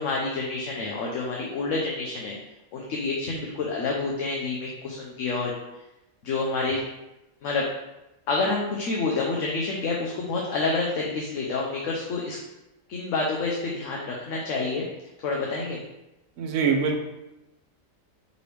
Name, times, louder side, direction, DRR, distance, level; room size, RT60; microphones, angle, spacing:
voice 1, 0.0-2.4 2.7-5.5 6.2-6.8 7.4-7.6 8.3-12.4 12.9-14.9 15.2-15.8, left 3 dB, 70° left, -2 dB, 1.0 m, -28 dB
voice 2, 16.4-17.1, right 5 dB, 70° right, 3 dB, 1.0 m, -24 dB
5.0 x 3.2 x 3.3 m, 0.95 s
omnidirectional pair, 1.4 m